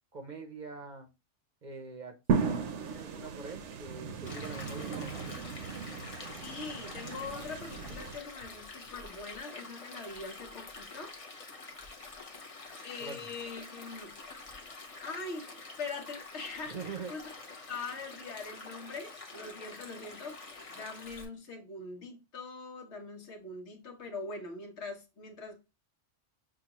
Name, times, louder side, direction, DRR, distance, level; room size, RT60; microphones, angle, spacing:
voice 1, 0.1-1.1 1.6-5.4 13.0-13.3 16.7-17.1, right 4 dB, 50° right, 0.7 m, -44 dB
sound 1, 2.3-8.2, right 6 dB, 80° right, 1.0 m, -36 dB
Stream, 4.3-21.3, left 3 dB, 35° left, 0.8 m, -47 dB
voice 2, 6.4-11.1 12.8-14.2 15.0-17.3 17.7-20.4 20.7-25.6, left 4 dB, 75° left, 1.3 m, -42 dB
6.1 x 2.3 x 2.9 m
omnidirectional pair, 1.2 m